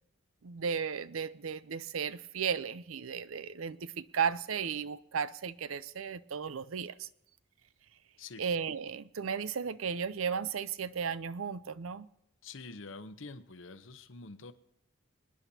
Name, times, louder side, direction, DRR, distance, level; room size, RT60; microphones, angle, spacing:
voice 1, 0.4-7.1 8.4-12.1, right 6 dB, 85° right, 0.6 m, -35 dB
voice 2, 12.4-14.5, left 3 dB, 70° left, 0.9 m, -46 dB
26.0 x 10.0 x 2.8 m
head